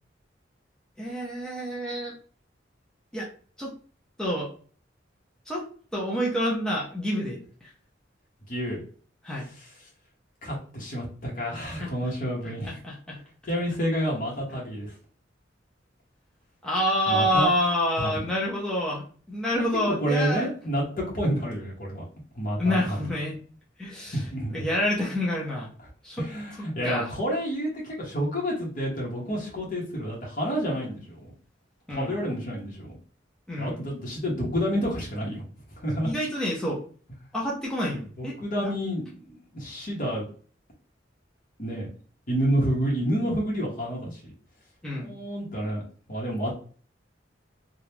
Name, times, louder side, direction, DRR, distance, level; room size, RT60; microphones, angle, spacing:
voice 1, 1.0-2.1 3.1-3.3 3.6-3.7 4.2-4.5 5.5-5.7 5.9-7.7 9.2-9.5 11.8-11.9 12.6-13.2 16.6-20.5 22.6-23.4 23.8-24.3 24.5-25.7 26.0-26.3 26.6-27.1 31.9-32.2 33.5-33.8 36.0-36.8 37.3-38.4 38.6-38.7 44.8-45.1, equal, 5° left, -5 dB, 0.7 m, -28 dB
voice 2, 8.5-8.8 9.6-9.7 10.4-12.8 13.4-14.9 17.1-17.5 18.0-18.2 19.5-19.7 20.0-22.0 22.3-23.0 24.1-24.7 26.2-31.3 31.9-33.0 33.6-35.4 35.7-36.1 38.2-40.2 41.6-41.9 42.3-44.3 44.9-45.8 46.1-46.5, equal, 50° left, -3 dB, 1.1 m, -29 dB
3.4 x 2.4 x 2.8 m, 0.42 s
head